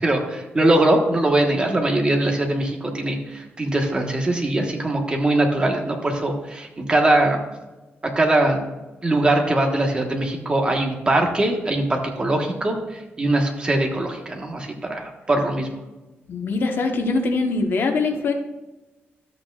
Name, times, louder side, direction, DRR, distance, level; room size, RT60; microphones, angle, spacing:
voice 1, 0.0-7.4 8.0-8.6 9.0-15.7, right 1 dB, 20° right, 2 dB, 1.2 m, -21 dB
voice 2, 16.3-18.3, left 3 dB, 55° left, 4 dB, 1.0 m, -22 dB
13.0 x 8.4 x 2.4 m, 1.1 s
wide cardioid pair, 160°, 4 cm